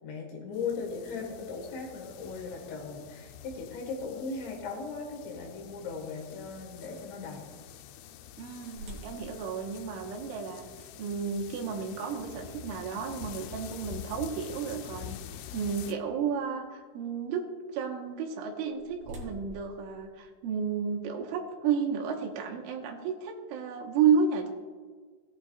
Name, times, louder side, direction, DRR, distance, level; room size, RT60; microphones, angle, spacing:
voice 1, 0.0-7.4, left 4 dB, 70° left, 0 dB, 3.5 m, -38 dB
sound 1, 0.5-15.9, left 10 dB, 90° left, 3.3 m, -47 dB
voice 2, 8.4-10.6 11.0-15.2 15.5-17.4 17.7-24.5, right 6 dB, 80° right, 1 dB, 3.4 m, -31 dB
sound 2, 8.8-14.7 15.3-15.4 16.0-16.2 18.3-20.9, right 1 dB, 40° right, 2.5 m, -50 dB
17.5 x 8.8 x 2.3 m, 1.5 s
omnidirectional pair, 5.7 m